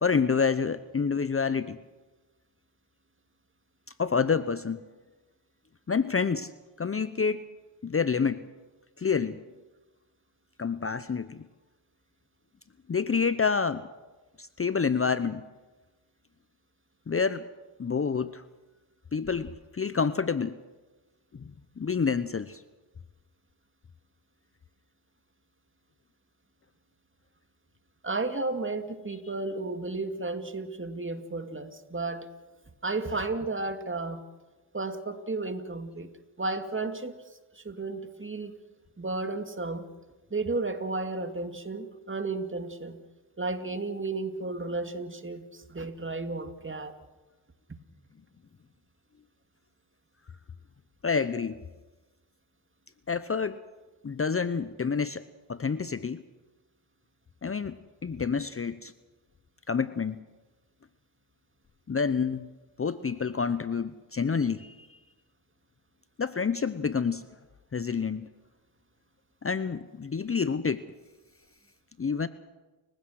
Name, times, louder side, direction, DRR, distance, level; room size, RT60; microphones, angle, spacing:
voice 1, 0.0-1.8 4.0-4.8 5.9-6.5 6.8-7.5 7.8-8.4 9.0-9.4 10.6-11.4 12.9-13.9 14.4-15.4 17.1-17.5 17.8-18.4 19.1-20.6 21.3-21.4 21.8-22.6 51.0-51.6 53.1-53.6 54.0-55.2 55.5-56.2 57.4-57.8 58.0-58.9 59.7-60.2 61.9-62.5 62.8-65.0 66.2-67.2 67.7-68.3 69.4-70.8 72.0-72.3, left 5 dB, 30° left, 0.8 m, -28 dB
voice 2, 28.0-32.3 32.8-34.2 34.7-36.1 36.4-37.2 37.5-38.6 39.0-39.9 40.3-43.0 43.4-46.9, right 3 dB, 25° right, 2.4 m, -33 dB
29.5 x 16.0 x 6.5 m
cardioid pair, 60°, 47 cm